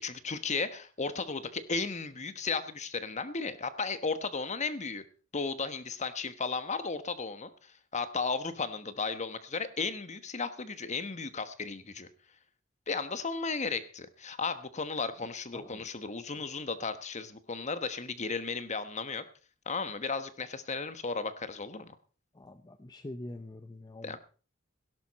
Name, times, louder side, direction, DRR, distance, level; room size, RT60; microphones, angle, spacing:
voice 1, 0.0-5.0 5.3-12.1 12.9-19.2 19.7-22.0 24.0-24.2, left 4 dB, 35° left, 11 dB, 1.2 m, -35 dB
voice 2, 15.5-15.9 22.3-24.2, left 1 dB, 20° left, 9 dB, 0.7 m, -45 dB
17.0 x 11.5 x 4.2 m, 0.37 s
head